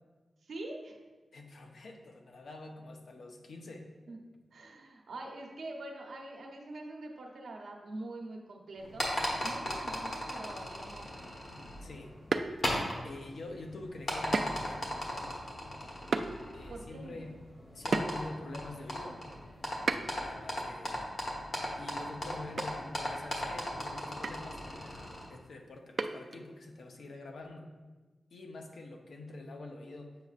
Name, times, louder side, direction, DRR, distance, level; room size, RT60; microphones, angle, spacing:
voice 1, 0.4-1.0 4.1-4.2 4.5-9.0 9.4-11.3 16.7-17.2, right 2 dB, 90° right, 1 dB, 0.8 m, -44 dB
voice 2, 1.3-3.9 11.8-12.2 13.0-15.4 16.5-17.3 17.7-19.2 19.9-21.1 21.7-25.0 25.3-27.7 28.3-30.2, left 2 dB, 80° left, 2 dB, 0.7 m, -46 dB
sound 1, 8.8-25.3, equal, 60° left, 1.3 m, -38 dB
sound 2, 12.3-13.0 14.3-14.7 15.1-15.2 16.1-16.3 17.9-18.4 19.9-20.3 22.0-22.2 22.6-22.8 23.0-23.1 24.2-24.5 26.0-26.4, right 3 dB, 55° right, 0.3 m, -32 dB
7.6 x 5.3 x 2.4 m, 1.3 s
wide cardioid pair, 100°, 0 cm